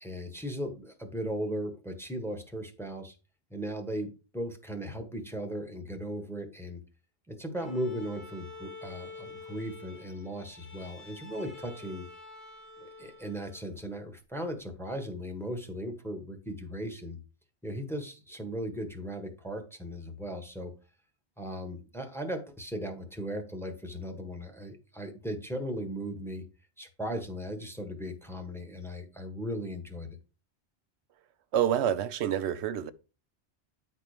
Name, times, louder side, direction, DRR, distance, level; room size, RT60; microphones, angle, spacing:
voice 1, 0.0-3.1 3.5-6.8 7.3-12.1 12.8-17.2 17.6-20.7 21.4-26.4 26.8-30.2, equal, ahead, 1.3 m, -37 dB
Bowed string instrument, 7.5-13.8, left 3 dB, 50° left, 1.7 m, -48 dB
voice 2, 31.5-32.9, right 10 dB, 85° right, 0.9 m, -27 dB
9.6 x 4.3 x 4.9 m
omnidirectional pair, 1.1 m